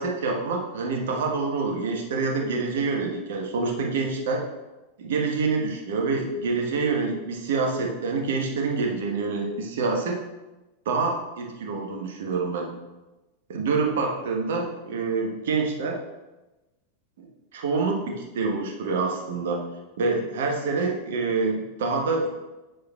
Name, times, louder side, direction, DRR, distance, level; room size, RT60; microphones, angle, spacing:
voice 1, 0.0-4.4 5.0-10.2 10.8-12.7 13.5-16.0 17.2-17.3 17.5-19.6 20.0-22.3, right 4 dB, 55° right, 1 dB, 1.1 m, -26 dB
7.7 x 6.7 x 2.3 m, 1.1 s
figure-of-eight pair, 90°, 0 cm